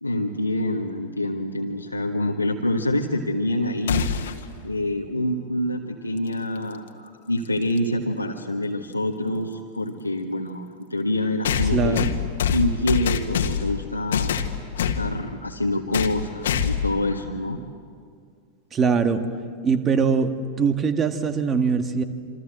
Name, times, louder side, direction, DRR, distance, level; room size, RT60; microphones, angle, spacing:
voice 1, 0.0-4.1 4.6-10.6 10.9-12.1 12.5-14.4 14.8-17.6, left 1 dB, 85° left, -1 dB, 1.5 m, -26 dB
sound 1, 3.9-4.4 6.6-6.7 7.8-7.9 11.4-13.8 14.1-15.0 15.9-16.2 16.4-16.9, left 8 dB, 60° left, 1.8 m, -24 dB
voice 2, 11.7-12.1 18.7-19.2 19.6-20.3 20.6-22.0, right 6 dB, 25° right, 8 dB, 1.9 m, -21 dB
27.0 x 27.0 x 7.8 m, 2.1 s
figure-of-eight pair, 90°, 0 cm